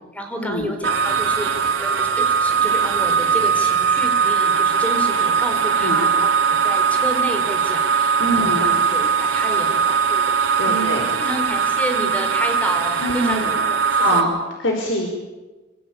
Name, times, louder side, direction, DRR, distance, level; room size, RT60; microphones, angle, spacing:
voice 1, 0.1-10.3 10.7-14.3, equal, 10° left, 5 dB, 4.5 m, -30 dB
sound 1, 0.8-14.2, right 6 dB, 70° right, 3.5 m, -20 dB
voice 2, 8.2-8.7 10.6-11.1 13.0-13.4 13.9-14.3 14.6-15.1, equal, 70° left, 1 dB, 4.7 m, -23 dB
26.0 x 25.5 x 8.7 m, 1.2 s
head